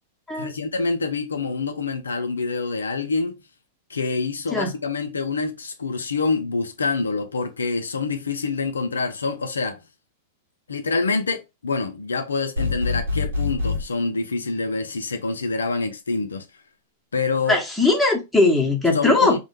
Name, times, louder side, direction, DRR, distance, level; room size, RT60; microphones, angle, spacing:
voice 1, 0.3-3.4 3.9-9.8 10.7-16.5 17.1-17.6 18.9-19.4, left 4 dB, 85° left, 0.3 m, -26 dB
sound 1, 12.6-13.8, left 3 dB, 80° right, 0.7 m, -25 dB
voice 2, 17.5-19.4, left 3 dB, 5° left, 0.8 m, -19 dB
2.1 x 2.1 x 3.0 m
hypercardioid pair, 100°, 0 cm